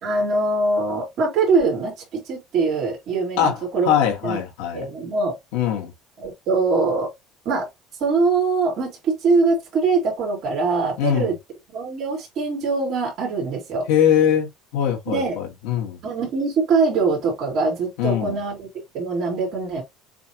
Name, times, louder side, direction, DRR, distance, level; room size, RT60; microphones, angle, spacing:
voice 1, 0.0-3.9 4.2-4.4 4.7-5.4 6.2-7.1 7.4-7.7 8.0-11.4 11.7-13.9 15.1-15.4 16.0-18.7 18.9-19.8, right 4 dB, 50° right, 2.4 m, -22 dB
voice 2, 3.8-4.9 5.5-5.9 11.0-11.3 13.9-16.0 18.0-18.4, left 9 dB, 90° left, 1.6 m, -21 dB
6.8 x 2.4 x 2.9 m
cardioid pair, 160°, 0 cm